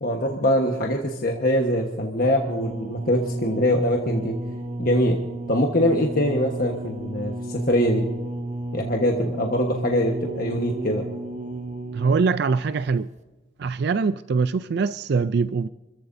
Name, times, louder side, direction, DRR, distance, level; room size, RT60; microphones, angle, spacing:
voice 1, 0.0-4.3 4.8-5.2 5.5-8.0 8.7-11.0, left 1 dB, 50° left, 1.3 m, -23 dB
sound 1, 2.2-12.4 13.2-13.3, right 2 dB, 40° right, 1.0 m, -33 dB
voice 2, 11.9-13.1 13.6-15.7, right 4 dB, 60° right, 0.4 m, -23 dB
28.5 x 14.5 x 2.7 m
head